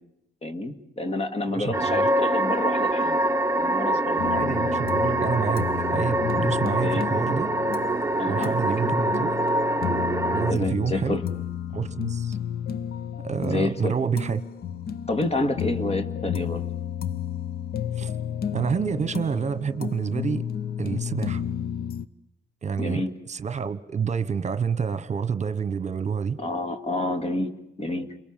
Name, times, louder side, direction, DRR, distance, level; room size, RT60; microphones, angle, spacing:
voice 1, 0.4-3.2 3.6-4.3 6.8-7.1 8.2-8.6 10.5-11.2 13.4-14.0 15.1-16.6 22.8-23.1 26.4-27.5 27.8-28.2, left 2 dB, 35° left, 2.2 m, -28 dB
voice 2, 1.5-2.1 4.3-7.5 8.3-9.3 10.3-11.2 11.7-12.4 13.2-14.4 18.0-18.1 18.5-20.4 20.8-21.4 22.6-26.4, right 6 dB, 40° right, 1.2 m, -28 dB
sound 1, 1.7-10.5, right 1 dB, 15° right, 0.9 m, -24 dB
sound 2, 4.2-22.0, left 9 dB, 60° left, 0.9 m, -32 dB
30.0 x 22.5 x 7.5 m
cardioid pair, 90°, 18 cm